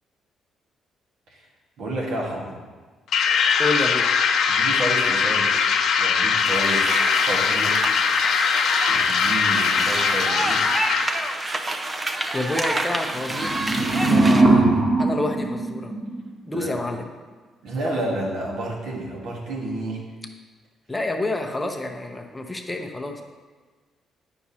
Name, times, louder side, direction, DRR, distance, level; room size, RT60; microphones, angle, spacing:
voice 1, 1.8-2.6 4.5-5.6 6.0-6.9 7.2-7.9 8.9-10.7 16.5-16.7 17.6-20.0, right 1 dB, 75° right, -2 dB, 1.5 m, -30 dB
sound 1, 3.1-11.4, left 6 dB, 70° left, 0.5 m, -21 dB
voice 2, 3.6-4.1 12.3-13.6 14.1-14.7 15.0-15.9 16.5-17.1 20.9-23.2, left 2 dB, 15° left, 2 dB, 0.7 m, -28 dB
sound 2, 6.4-14.4, right 2 dB, 25° right, 0.6 m, -28 dB
sound 3, 13.2-16.3, right 2 dB, 60° right, 2.1 m, -20 dB
9.2 x 6.0 x 2.8 m, 1.4 s
cardioid pair, 90°, 0 cm